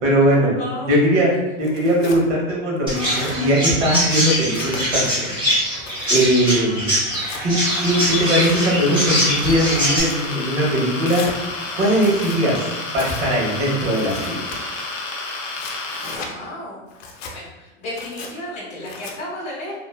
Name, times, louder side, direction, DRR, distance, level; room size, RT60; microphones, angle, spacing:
voice 1, 0.0-0.6 0.9-5.4 6.1-7.0 7.4-11.3 11.7-12.6 12.9-14.6, equal, 70° right, -3 dB, 1.2 m, -20 dB
voice 2, 0.6-1.2 6.3-6.6 16.0-16.8 17.3-19.7, left 1 dB, 15° left, -8 dB, 0.9 m, -33 dB
Tearing, 1.6-2.2 2.8-3.4 3.9-5.1 5.6-6.3 7.1-7.4 8.1-8.6 9.2-10.2 11.0-11.4 11.9-12.4 12.9-13.3 13.9-14.6 15.3-16.3 16.9-17.3 17.9-18.3 18.9-19.1, left 3 dB, 70° left, 0.6 m, -36 dB
Chirp tweet, 2.9-10.0, equal, 15° right, 0.8 m, -23 dB
sound 1, 7.6-16.2, left 3 dB, 35° left, 0.4 m, -30 dB
3.0 x 2.2 x 2.2 m, 1.1 s
supercardioid pair, 145°, 38 cm